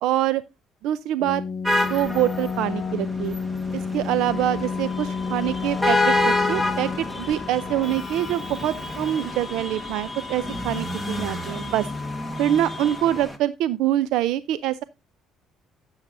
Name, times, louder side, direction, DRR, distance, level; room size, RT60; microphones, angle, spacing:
voice 1, 0.0-0.4 0.8-1.4 1.8-3.4 3.7-11.9 12.4-14.8, right 12 dB, 75° right, 16 dB, 0.4 m, -25 dB
Keyboard (musical), 1.2-9.3, left 5 dB, 40° left, 0.6 m, -31 dB
sound 1, 1.7-13.4, left 2 dB, 10° right, 1.4 m, -29 dB
sound 2, 4.3-13.2, left 6 dB, 20° left, 1.5 m, -40 dB
12.0 x 8.0 x 2.6 m, 0.25 s
cardioid pair, 115°, 0 cm